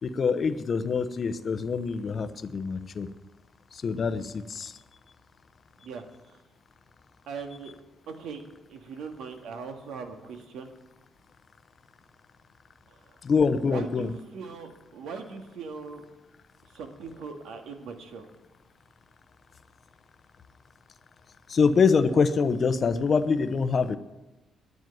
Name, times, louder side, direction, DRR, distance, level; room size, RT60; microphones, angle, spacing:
voice 1, 0.0-3.1 3.7-4.7 13.2-14.1 21.5-24.0, left 5 dB, 40° left, 11 dB, 0.7 m, -25 dB
voice 2, 7.3-7.7 8.1-8.4 8.7-10.7 12.9-13.0 13.6-16.0 16.7-18.3, right 5 dB, 85° right, 4 dB, 1.8 m, -40 dB
10.5 x 9.3 x 9.1 m, 1.1 s
cardioid pair, 150°, 0 cm